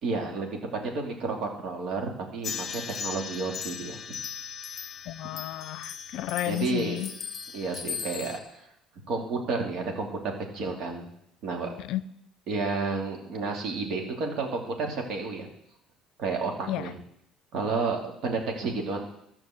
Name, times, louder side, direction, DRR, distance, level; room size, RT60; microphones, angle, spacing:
voice 1, 0.0-4.2 6.4-7.0 7.5-8.4 9.1-11.1 11.4-11.7 12.5-15.5 16.2-16.9 17.5-19.1, right 3 dB, 65° right, 2 dB, 2.8 m, -31 dB
sound 1, 2.4-8.4, left 7 dB, 35° left, 1.1 m, -38 dB
voice 2, 5.1-7.1 11.8-12.0 16.7-16.9, left 15 dB, 70° left, 15 dB, 0.5 m, -32 dB
13.0 x 6.1 x 7.8 m, 0.76 s
supercardioid pair, 100°, 0 cm